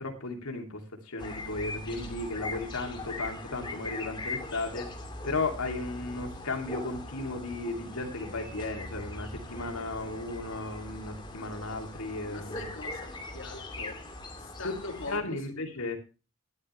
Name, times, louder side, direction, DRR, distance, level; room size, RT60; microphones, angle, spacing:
voice 1, 0.0-4.9 5.2-12.8 14.6-16.0, left 2 dB, 80° left, 2.8 m, -35 dB
sound 1, 1.2-15.2, left 2 dB, 20° left, 2.6 m, -41 dB
voice 2, 12.3-14.1 14.4-15.8, left 2 dB, 60° left, 2.6 m, -43 dB
13.0 x 11.5 x 3.2 m
head